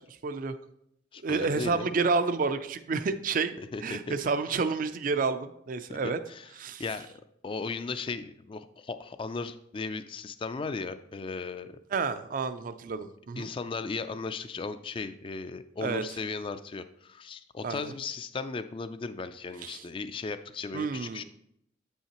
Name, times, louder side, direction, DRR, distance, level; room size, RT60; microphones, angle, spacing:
voice 1, 0.1-0.6 1.2-3.5 3.8-6.2 6.6-6.8 11.9-13.5 15.8-16.0 17.6-17.9 19.6-19.8 20.7-21.2, right 4 dB, 45° right, 11 dB, 0.4 m, -29 dB
voice 2, 1.1-2.0 3.6-4.2 6.3-6.5 6.8-7.1 7.4-11.8 13.4-21.2, left 4 dB, 25° left, 11 dB, 0.3 m, -36 dB
8.1 x 5.6 x 2.9 m, 0.75 s
head